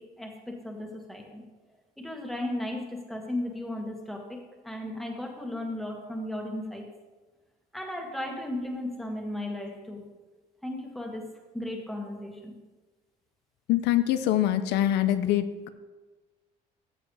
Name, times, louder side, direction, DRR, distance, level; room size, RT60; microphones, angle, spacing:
voice 1, 0.0-1.4 2.0-6.9 7.7-10.0 10.6-11.3 11.5-12.6, left 1 dB, ahead, 0 dB, 1.8 m, -35 dB
voice 2, 13.7-15.7, left 12 dB, 85° left, 10 dB, 0.6 m, -24 dB
14.0 x 7.7 x 3.3 m, 1.3 s
cardioid pair, 110°, 17 cm